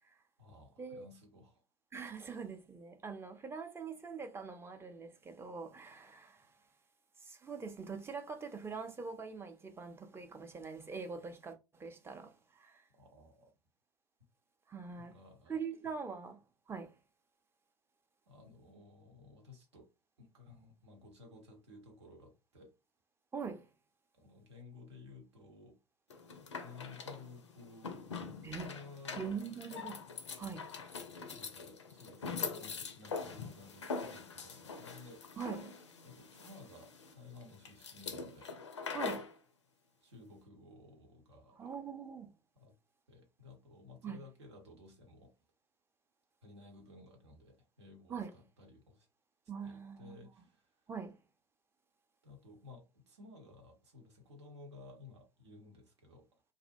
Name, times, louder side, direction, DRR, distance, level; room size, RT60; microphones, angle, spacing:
voice 1, 0.4-1.6 13.0-13.5 15.0-15.9 18.3-19.9 20.2-22.7 24.1-25.8 26.1-26.2 26.6-28.0 28.6-29.3 31.2-35.3 36.0-38.5 40.0-41.7 42.5-42.7 43.1-45.3 46.4-49.1 49.6-50.8 52.2-56.3, left 3 dB, 70° right, 0.8 m, -55 dB
voice 2, 1.9-6.6 7.2-12.8 14.7-15.2 15.5-17.0 23.3-23.7 28.4-28.7 29.2-30.0 30.4-30.7 35.4-35.8 38.9-39.3 41.6-42.3 44.0-44.2 48.1-48.3 49.5-50.3 50.9-51.2, right 5 dB, 15° right, 0.5 m, -43 dB
sound 1, 26.1-39.3, left 5 dB, 80° left, 0.4 m, -43 dB
2.5 x 2.1 x 2.6 m
figure-of-eight pair, 70°, 15 cm